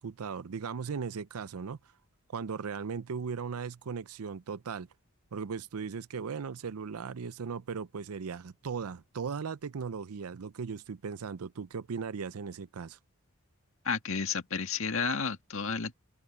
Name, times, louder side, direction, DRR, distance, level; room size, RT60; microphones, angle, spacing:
voice 1, 0.0-1.8 2.3-4.9 5.3-13.0, right 5 dB, 85° right, 0.5 m, -37 dB
voice 2, 13.8-15.9, left 5 dB, 70° left, 1.9 m, -31 dB
open air
head